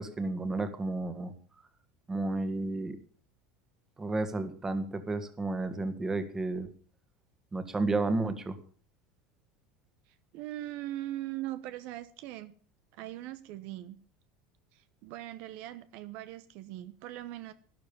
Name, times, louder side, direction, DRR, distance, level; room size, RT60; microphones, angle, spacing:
voice 1, 0.0-1.3 2.1-3.0 4.0-6.7 7.5-8.6, right 2 dB, 15° right, 1.8 m, -32 dB
voice 2, 10.1-12.5 12.9-14.0 14.7-17.5, right 14 dB, 60° right, 1.0 m, -40 dB
12.0 x 11.5 x 7.1 m
supercardioid pair, 130°, 3 cm